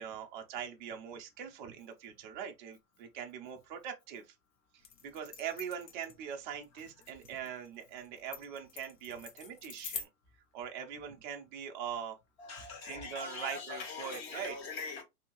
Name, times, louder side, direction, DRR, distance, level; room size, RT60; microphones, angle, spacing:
voice 1, 0.0-4.3 5.0-10.1 10.5-12.2 12.8-14.5, right 8 dB, 30° right, 0.5 m, -42 dB
sound 1, 4.8-10.1, left 6 dB, 70° left, 1.1 m, -46 dB
voice 2, 12.4-15.0, left 4 dB, 40° left, 1.0 m, -42 dB
2.7 x 2.7 x 2.9 m
hypercardioid pair, 135°, 50 cm